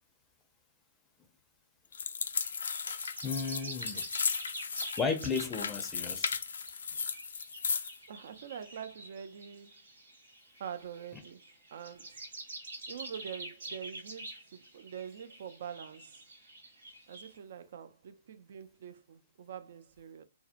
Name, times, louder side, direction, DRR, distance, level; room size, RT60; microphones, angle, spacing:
sound 1, 1.9-8.0, left 6 dB, 80° left, 0.3 m, -35 dB
sound 2, 2.2-17.4, right 2 dB, 85° right, 1.1 m, -47 dB
voice 1, 3.2-4.1 5.0-6.3, left 5 dB, 15° left, 0.5 m, -34 dB
voice 2, 8.1-9.7 10.6-11.4 11.7-12.3 12.9-16.2 17.1-20.2, right 8 dB, 60° right, 0.4 m, -45 dB
2.7 x 2.1 x 2.4 m
hypercardioid pair, 135°, 0 cm